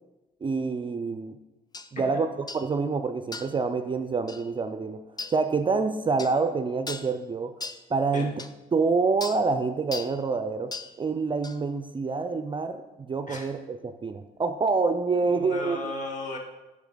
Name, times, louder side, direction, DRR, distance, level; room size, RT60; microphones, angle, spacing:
voice 1, 0.4-1.4 1.9-2.3 2.5-5.0 5.3-7.5 7.9-8.4 8.7-10.7 11.0-15.9, right 4 dB, 25° right, 9 dB, 0.4 m, -27 dB
sound 1, 1.7-1.9 2.5-2.7 3.3-3.6 4.3-4.4 5.2-5.4 6.2-6.4 6.9-7.1 7.6-7.8 8.4-8.5 9.2-9.4 9.9-10.2 10.7-10.9 11.4-11.6, left 3 dB, 20° left, 0.5 m, -37 dB
voice 2, 15.2-16.4, left 2 dB, 40° left, 0 dB, 2.0 m, -35 dB
7.0 x 6.4 x 3.8 m, 1.0 s
hypercardioid pair, 60°, 19 cm